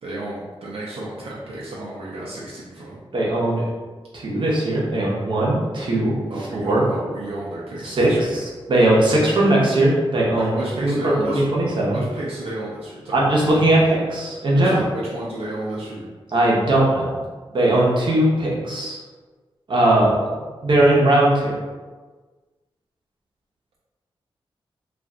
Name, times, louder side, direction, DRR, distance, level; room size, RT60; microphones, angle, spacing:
voice 1, 0.0-3.0 6.2-8.3 10.3-13.4 14.5-16.1, right 1 dB, 85° right, -6 dB, 0.6 m, -32 dB
voice 2, 3.1-3.6 4.1-6.1 6.5-6.8 7.8-10.5 10.8-10.9 11.3-12.0 13.1-14.8 16.3-17.1 17.5-19.0 19.7-20.3 20.6-21.6, right 1 dB, 55° right, -5 dB, 0.8 m, -19 dB
2.5 x 2.2 x 3.7 m, 1.4 s
wide cardioid pair, 110°, 10 cm